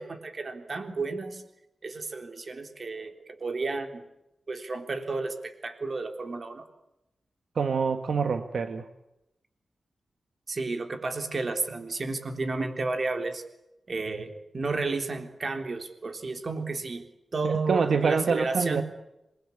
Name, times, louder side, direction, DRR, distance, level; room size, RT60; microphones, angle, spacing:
voice 1, 0.0-1.4 1.8-4.0 4.5-6.6 10.5-13.4 13.9-17.0 17.3-18.8, right 3 dB, 45° right, 7 dB, 3.5 m, -32 dB
voice 2, 7.5-8.9 17.7-18.8, right 5 dB, 70° right, 8 dB, 1.5 m, -26 dB
27.5 x 21.5 x 8.6 m, 0.89 s
wide cardioid pair, 140°, 0 cm